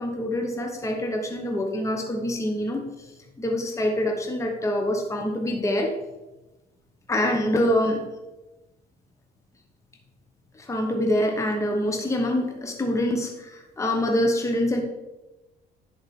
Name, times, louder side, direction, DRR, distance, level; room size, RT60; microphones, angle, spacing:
voice 1, 0.0-2.8 3.4-5.9 7.1-8.0 10.6-14.8, left 1 dB, 15° left, 2 dB, 1.2 m, -25 dB
10.5 x 4.7 x 4.3 m, 1.0 s
cardioid pair, 110°, 17 cm